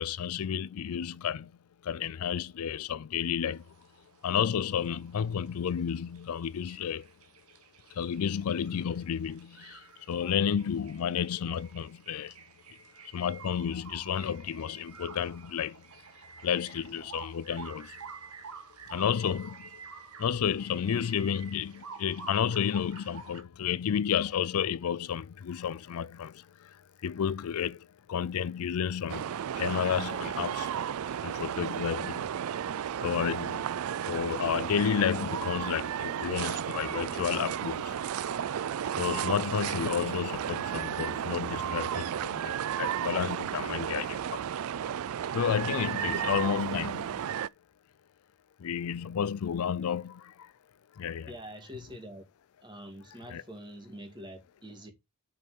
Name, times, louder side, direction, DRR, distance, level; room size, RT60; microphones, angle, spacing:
voice 1, 0.0-1.6 1.8-3.7 4.2-7.1 7.9-12.4 13.1-15.8 16.4-18.0 18.9-19.8 20.2-30.7 31.2-32.3 33.0-33.7 34.1-38.0 39.0-44.4 45.3-47.2 48.6-50.5 51.0-51.3 53.3-53.4, left 8 dB, 75° left, 0.4 m, -31 dB
sound 1, 3.5-23.4, right 5 dB, 90° right, 1.4 m, -50 dB
sound 2, 29.1-47.5, right 9 dB, 70° right, 0.4 m, -33 dB
voice 2, 51.3-52.3 52.6-54.9, equal, 20° right, 1.9 m, -45 dB
6.3 x 5.5 x 4.8 m
head